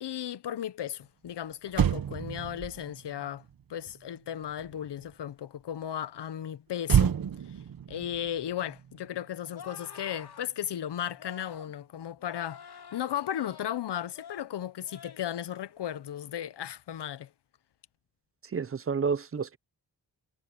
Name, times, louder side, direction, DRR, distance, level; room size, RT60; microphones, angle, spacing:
voice 1, 0.0-3.4 3.7-7.1 7.9-17.3, left 10 dB, 90° left, 0.9 m, -35 dB
Motor vehicle (road), 1.3-1.4 1.7-5.2 6.8-9.4 9.7-10.0, right 9 dB, 60° right, 1.0 m, -30 dB
sound 1, 9.5-10.5 11.2-11.7 12.2-13.8 14.1-14.5 14.8-15.3 15.7-16.0, left 7 dB, 65° left, 3.4 m, -48 dB
voice 2, 18.4-19.6, right 5 dB, 35° right, 0.6 m, -30 dB
wide cardioid pair, 155°, 40 cm